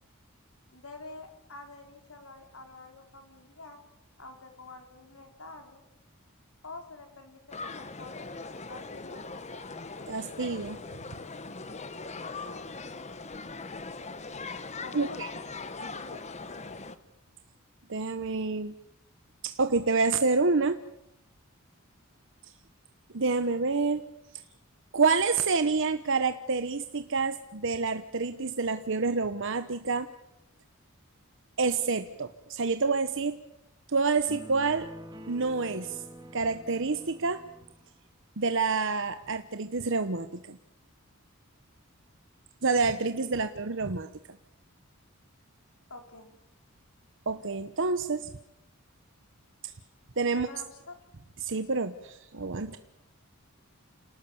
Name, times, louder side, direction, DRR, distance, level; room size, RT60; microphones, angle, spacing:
voice 1, 0.7-3.8 4.2-5.8 6.6-9.7 12.3-12.6 14.8-15.3 15.8-16.2 43.4-43.5 45.9-46.4 50.3-50.9, left 3 dB, 75° left, 5 dB, 4.2 m, -47 dB
sound 1, 7.5-17.0, left 3 dB, 30° left, 1.3 m, -40 dB
voice 2, 10.1-10.8 14.9-15.3 17.9-18.7 19.4-20.8 23.1-24.0 24.9-30.1 31.6-33.4 33.9-34.9 35.3-36.0 36.3-37.4 38.4-40.6 42.6-44.1 47.3-48.3 49.6-49.7 50.2-50.5 51.4-52.8, right 4 dB, 60° right, 9 dB, 1.0 m, -28 dB
sound 2, 34.3-37.8, equal, 20° right, 2.2 m, -46 dB
28.5 x 19.0 x 7.2 m, 0.84 s
head